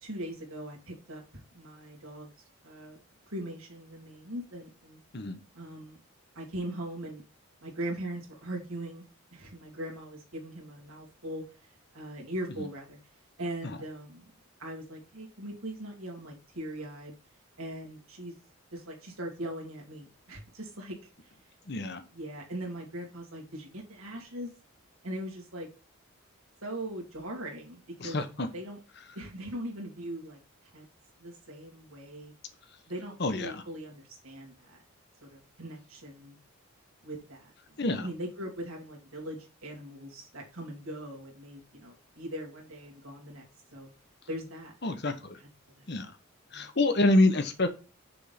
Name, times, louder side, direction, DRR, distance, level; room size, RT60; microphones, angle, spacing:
voice 1, 0.0-2.3 2.6-3.0 3.3-5.0 5.5-6.0 6.3-7.2 7.6-9.0 9.3-11.4 11.9-13.0 13.4-14.3 14.6-17.1 17.6-18.3 18.7-21.0 22.1-24.5 25.0-25.7 26.6-28.2 28.5-28.8 29.1-30.4 30.7-30.8 31.2-32.3 32.9-34.8 35.2-36.4 37.0-43.4 43.7-43.9 44.3-44.9 45.4-45.5 45.8-45.9 46.5-46.7, right 1 dB, 85° right, -1 dB, 2.6 m, -40 dB
voice 2, 21.7-22.0 28.0-28.5 33.2-33.6 37.8-38.1 44.8-45.4 45.9-46.1 46.5-47.7, left 2 dB, 50° left, 9 dB, 1.1 m, -27 dB
6.7 x 3.7 x 5.8 m, 0.34 s
head